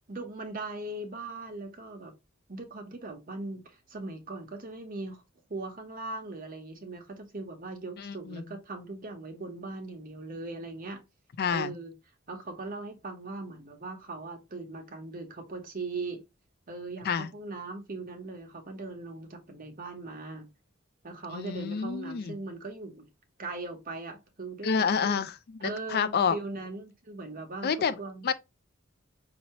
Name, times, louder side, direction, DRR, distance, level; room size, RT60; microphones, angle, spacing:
voice 1, 0.1-2.1 2.5-5.2 5.5-11.0 11.5-11.9 12.3-16.2 16.7-20.5 21.0-23.0 23.4-25.2 25.6-27.7 28.0-28.3, right 2 dB, 45° right, 1.0 m, -39 dB
voice 2, 8.0-8.4 11.4-11.7 17.0-17.3 21.3-22.4 24.6-25.3 25.6-26.4 27.6-28.0 28.2-28.3, left 6 dB, 50° left, 0.4 m, -28 dB
5.5 x 2.8 x 2.9 m
head